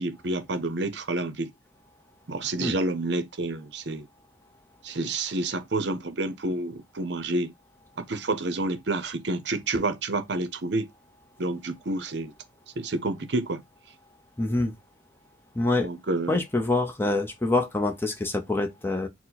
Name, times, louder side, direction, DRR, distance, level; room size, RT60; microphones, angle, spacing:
voice 1, 0.0-1.5 2.3-4.1 4.8-7.5 8.0-10.9 11.4-12.3 12.8-13.6 15.8-16.4, right 2 dB, 60° right, 0.6 m, -29 dB
voice 2, 14.4-14.7 15.6-15.9 16.3-19.1, left 2 dB, 10° left, 0.6 m, -25 dB
4.6 x 2.1 x 3.9 m
head